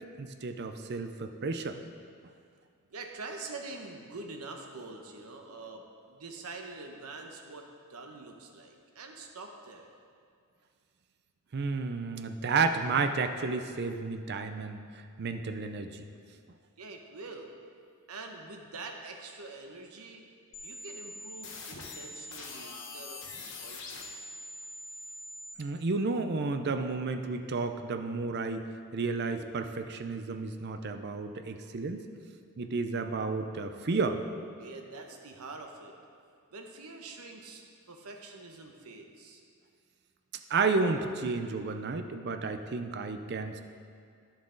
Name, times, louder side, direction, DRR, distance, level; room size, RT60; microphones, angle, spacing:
voice 1, 0.0-1.8 11.5-14.8 15.2-16.0 25.6-28.7 28.9-32.1 32.6-34.2 40.5-43.6, right 4 dB, 50° right, 8 dB, 0.5 m, -32 dB
voice 2, 2.9-7.6 7.9-9.9 16.8-17.5 18.1-20.2 20.6-24.3 34.6-35.9 36.5-39.4, right 3 dB, 85° right, 3 dB, 1.0 m, -45 dB
sound 1, 20.5-25.5, left 2 dB, 60° left, 1.1 m, -43 dB
10.5 x 7.1 x 3.9 m, 2.2 s
head